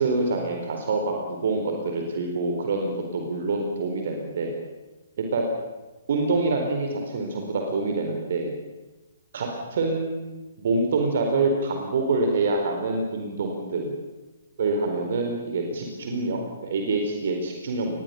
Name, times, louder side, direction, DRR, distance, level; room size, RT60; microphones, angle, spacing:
voice 1, 0.0-4.5 5.2-5.4 6.1-8.5 9.3-10.2 10.6-13.9 14.6-18.0, right 3 dB, 50° right, 3 dB, 4.3 m, -26 dB
26.5 x 21.0 x 7.0 m, 1.1 s
figure-of-eight pair, 125°, 0 cm